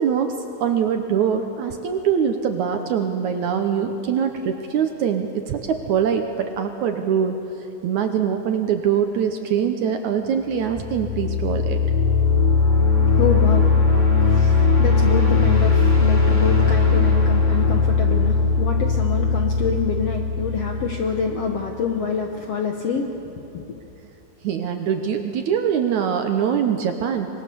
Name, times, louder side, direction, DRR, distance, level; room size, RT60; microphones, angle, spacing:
voice 1, 0.0-7.4 7.8-11.8 24.4-27.3, right 7 dB, 70° right, 6 dB, 2.0 m, -23 dB
sound 1, 10.6-21.3, left 4 dB, 5° left, 2.1 m, -19 dB
voice 2, 13.1-23.8, left 6 dB, 65° left, 3 dB, 1.5 m, -27 dB
25.0 x 21.0 x 7.0 m, 2.9 s
omnidirectional pair, 4.2 m